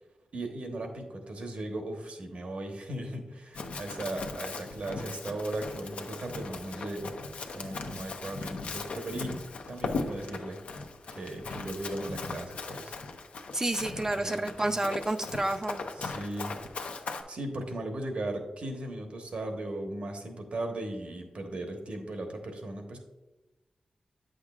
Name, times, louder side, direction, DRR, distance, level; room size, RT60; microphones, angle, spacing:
voice 1, 0.3-7.2 7.5-9.3 9.7-10.6 11.2-12.9 14.0-14.7 15.9-16.5 17.3-23.0, right 1 dB, 75° right, 4 dB, 1.1 m, -37 dB
Run, 3.5-17.2, left 3 dB, 90° left, 0.6 m, -38 dB
voice 2, 13.5-15.8, right 2 dB, 25° right, 8 dB, 0.3 m, -30 dB
8.4 x 6.4 x 2.4 m, 1.1 s
cardioid pair, 70°, 2 cm